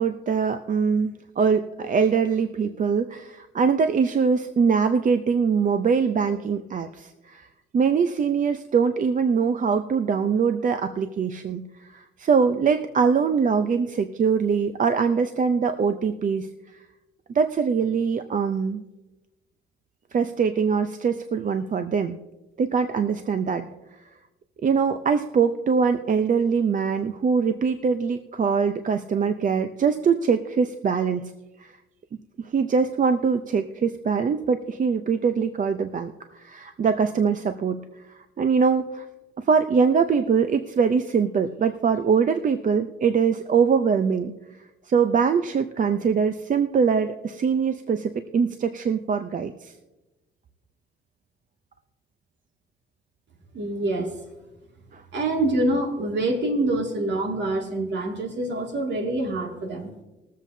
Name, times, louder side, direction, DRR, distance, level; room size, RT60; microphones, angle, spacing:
voice 1, 0.0-7.5 7.7-16.5 17.3-18.8 20.1-22.2 22.6-23.7 24.6-31.3 31.6-31.7 32.4-39.1 39.4-44.3 44.9-49.7 54.9-55.0, right 6 dB, 40° right, 9 dB, 0.6 m, -23 dB
voice 2, 53.5-54.1 55.1-59.9, right 2 dB, 60° right, 2 dB, 2.3 m, -26 dB
21.5 x 7.4 x 2.7 m, 1.1 s
cardioid pair, 90°, 20 cm